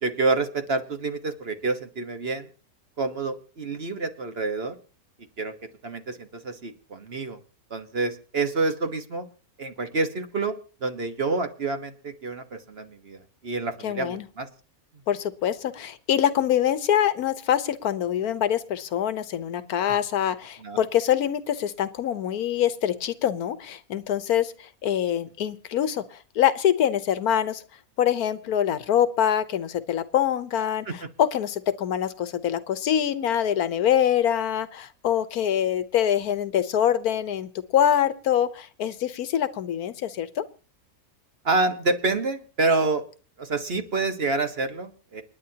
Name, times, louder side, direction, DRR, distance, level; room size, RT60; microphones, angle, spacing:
voice 1, 0.0-2.5 3.0-4.8 5.4-5.5 5.8-7.4 7.7-9.3 9.6-10.5 10.8-14.5 20.6-20.8 30.9-31.0 41.4-43.0 43.4-45.2, right 3 dB, 45° right, 7 dB, 1.4 m, -27 dB
voice 2, 13.8-14.2 15.1-27.6 28.0-40.4, left 10 dB, 80° left, 14 dB, 1.3 m, -24 dB
28.0 x 10.0 x 2.8 m, 0.36 s
omnidirectional pair, 1.6 m